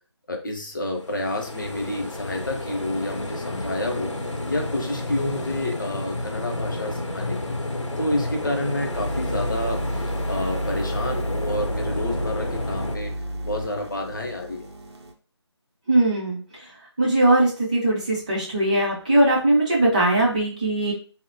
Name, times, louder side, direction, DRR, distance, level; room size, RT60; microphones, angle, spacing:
voice 1, 0.3-4.1 4.5-7.4 8.0-9.8 10.3-13.1 13.4-14.7, left 1 dB, 45° left, 2 dB, 0.6 m, -29 dB
sound 1, 0.9-13.0, left 1 dB, 85° left, 0.7 m, -31 dB
sound 2, 8.9-15.1, equal, 60° right, 0.6 m, -31 dB
voice 2, 15.9-16.4 17.0-20.9, right 1 dB, 15° right, -6 dB, 0.5 m, -20 dB
3.6 x 2.1 x 2.6 m, 0.38 s
figure-of-eight pair, 165°, 15 cm